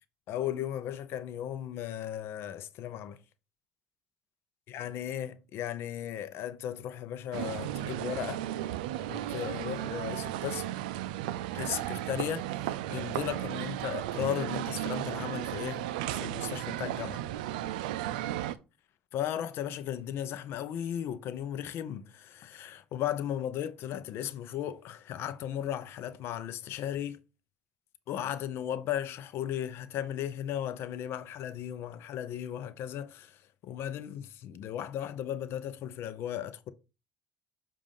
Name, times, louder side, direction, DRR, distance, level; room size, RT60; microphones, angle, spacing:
voice 1, 0.3-3.2 4.7-8.4 9.0-10.6 11.5-15.9 16.1-17.2 19.1-27.2 28.1-36.7, left 10 dB, 65° left, 0.6 m, -36 dB
sound 1, 7.3-18.5, right 13 dB, 90° right, 0.3 m, -35 dB
7.3 x 2.5 x 5.3 m
supercardioid pair, 70°, 4 cm